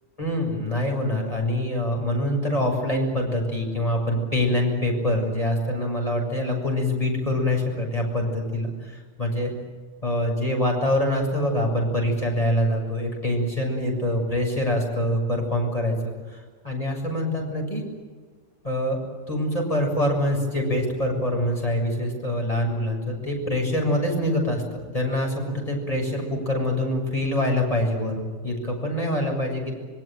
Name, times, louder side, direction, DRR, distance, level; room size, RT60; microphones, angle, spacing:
voice 1, 0.2-9.5 10.0-17.8 18.6-19.0 19.3-29.7, left 1 dB, 25° left, 1 dB, 7.3 m, -25 dB
26.0 x 22.5 x 9.2 m, 1.5 s
omnidirectional pair, 1.4 m